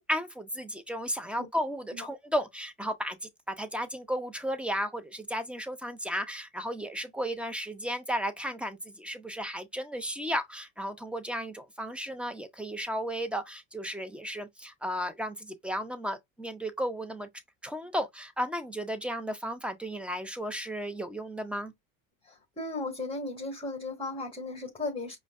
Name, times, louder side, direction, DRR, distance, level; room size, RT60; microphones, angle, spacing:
voice 1, 0.0-3.2 3.5-17.3 17.6-21.7, equal, 5° right, 0.7 m, -34 dB
voice 2, 22.2-25.2, left 2 dB, 15° left, 1.9 m, -36 dB
5.0 x 2.2 x 2.4 m
supercardioid pair, 95°, 41 cm